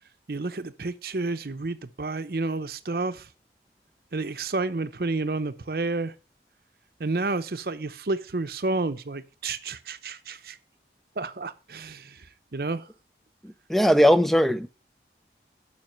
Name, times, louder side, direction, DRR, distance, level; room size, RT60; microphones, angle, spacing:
voice 1, 0.3-3.3 4.1-6.1 7.0-10.6 11.2-12.2 12.5-12.9, right 3 dB, 55° right, 0.7 m, -30 dB
voice 2, 13.4-14.7, equal, ahead, 0.4 m, -20 dB
7.5 x 5.8 x 6.4 m
head